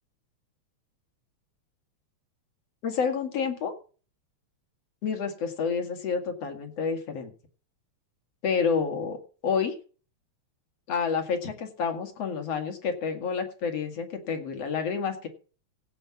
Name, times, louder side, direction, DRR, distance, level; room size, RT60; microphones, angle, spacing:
voice 1, 2.8-3.7 5.0-7.3 8.4-9.2 9.4-9.8 10.9-15.3, left 6 dB, 60° left, 5 dB, 3.1 m, -29 dB
16.5 x 5.6 x 7.3 m, 0.38 s
omnidirectional pair, 3.3 m